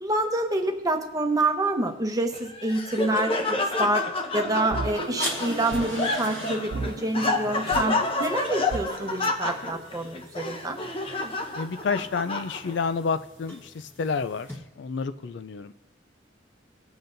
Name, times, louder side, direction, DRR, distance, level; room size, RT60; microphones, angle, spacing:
voice 1, 0.0-4.0 4.3-10.8, right 1 dB, 20° right, 5 dB, 0.9 m, -27 dB
Laughter, 2.3-12.9, left 3 dB, 30° left, 0.9 m, -29 dB
sound 1, 4.3-9.3, right 4 dB, 75° right, 0.4 m, -37 dB
sound 2, 4.8-14.6, equal, 10° left, 1.3 m, -42 dB
voice 2, 11.6-13.6 14.0-14.5 14.8-15.7, left 5 dB, 65° left, 12 dB, 0.4 m, -29 dB
19.5 x 7.8 x 2.6 m, 0.96 s
head